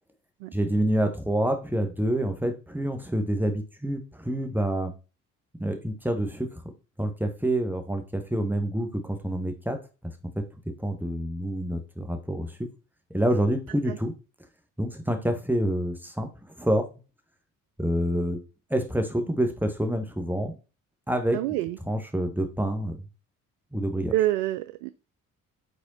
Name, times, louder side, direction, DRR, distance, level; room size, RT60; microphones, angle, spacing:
voice 1, 0.5-4.9 5.6-6.6 7.0-10.4 10.8-12.6 13.1-14.1 14.8-16.9 17.8-18.4 18.7-20.5 21.1-21.4 21.9-23.1 23.7-24.1, right 1 dB, 5° right, 1.6 m, -27 dB
voice 2, 21.3-21.8 24.1-24.9, right 14 dB, 80° right, 0.5 m, -26 dB
5.4 x 4.2 x 5.6 m
hypercardioid pair, 55°, 39 cm